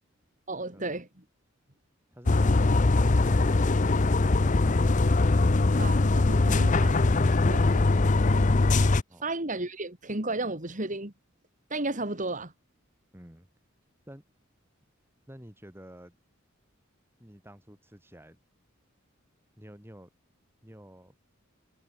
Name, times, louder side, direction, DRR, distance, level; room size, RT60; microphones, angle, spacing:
voice 1, 0.5-1.2 5.8-7.8 9.2-11.1 11.7-12.5, right 2 dB, 40° right, 3.5 m, -34 dB
voice 2, 2.1-4.9 9.1-9.3 13.1-13.5 14.1-14.2 15.3-16.2 17.2-18.4 19.6-20.1 20.6-21.1, equal, 10° right, 7.2 m, -50 dB
sound 1, 2.3-9.0, left 2 dB, 40° left, 0.7 m, -22 dB
head